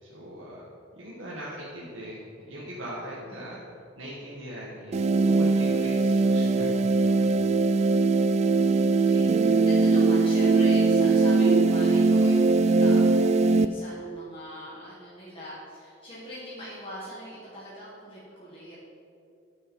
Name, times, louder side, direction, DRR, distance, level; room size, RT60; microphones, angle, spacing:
voice 1, 0.0-0.6 0.9-3.6 4.0-7.3, equal, 80° right, -6 dB, 1.3 m, -40 dB
voice 2, 3.2-3.6 8.1-18.8, equal, 30° left, -8 dB, 1.7 m, -42 dB
sound 1, 4.9-13.7, right 3 dB, 35° right, 0.3 m, -21 dB
10.5 x 6.4 x 4.5 m, 2.5 s
head